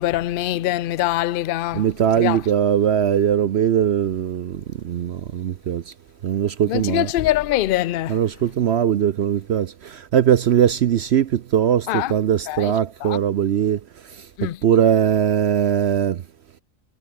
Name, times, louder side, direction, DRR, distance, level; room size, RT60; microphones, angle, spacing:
voice 1, 0.0-2.5 6.7-8.3 11.9-12.1 12.5-13.2 14.4-14.6, left 14 dB, 60° left, 0.6 m, -24 dB
voice 2, 1.7-5.9 6.2-7.1 8.1-13.8 14.1-14.3 14.6-16.2, right 9 dB, 60° right, 0.9 m, -20 dB
omnidirectional pair, 1.3 m